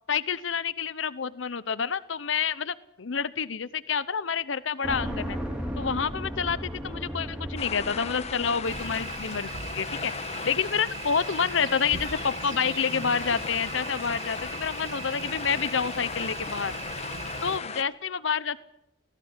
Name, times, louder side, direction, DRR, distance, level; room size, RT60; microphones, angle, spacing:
voice 1, 0.1-5.4 5.8-10.1 10.4-16.7 17.4-18.6, left 6 dB, 70° left, 17 dB, 0.8 m, -28 dB
sound 1, 4.8-9.8, equal, 5° right, 4.1 m, -36 dB
sound 2, 7.6-17.8, left 5 dB, 35° left, 1.1 m, -37 dB
sound 3, 8.6-17.6, right 5 dB, 70° right, 1.4 m, -39 dB
18.5 x 18.0 x 9.8 m, 0.88 s
head